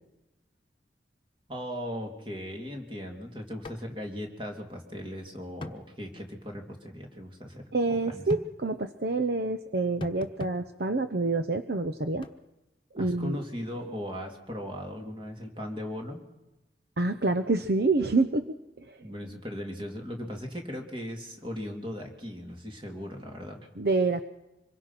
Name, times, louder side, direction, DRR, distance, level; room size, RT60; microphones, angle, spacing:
voice 1, 1.5-8.2 12.9-16.2 19.0-23.7, equal, 30° right, 3 dB, 3.3 m, -38 dB
sound 1, 3.6-3.8 4.1-4.2 5.6-5.8 8.3-8.5 10.0-10.6 12.2-12.4, left 2 dB, 30° left, 1.2 m, -38 dB
voice 2, 7.7-12.3 12.9-13.4 17.0-18.5 18.8-19.0 23.8-24.2, right 3 dB, 60° right, 10 dB, 0.8 m, -27 dB
25.5 x 22.5 x 6.0 m, 0.97 s
head